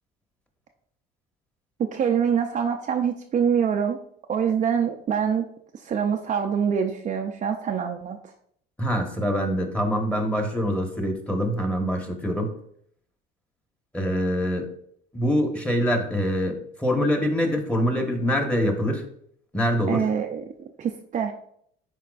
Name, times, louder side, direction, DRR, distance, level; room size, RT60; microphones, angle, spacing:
voice 1, 1.8-4.0 4.3-5.5 5.7-8.2 19.9-20.4 20.8-21.3, right 7 dB, 35° right, 3 dB, 0.5 m, -25 dB
voice 2, 8.8-12.5 13.9-14.7 15.1-19.0 19.5-20.0, equal, 5° left, 3 dB, 1.3 m, -24 dB
10.5 x 4.4 x 2.5 m, 0.67 s
cardioid pair, 120°, 21 cm